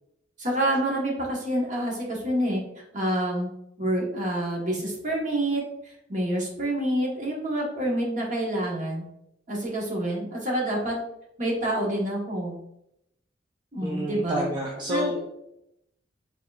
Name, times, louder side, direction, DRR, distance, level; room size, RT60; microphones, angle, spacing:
voice 1, 0.4-3.5 3.8-9.0 9.5-11.0 11.4-12.6 13.7-14.4 14.9-15.1, right 1 dB, 45° right, -2 dB, 1.2 m, -27 dB
voice 2, 13.8-15.3, equal, 25° right, -1 dB, 0.5 m, -30 dB
4.6 x 3.7 x 2.3 m, 0.79 s
head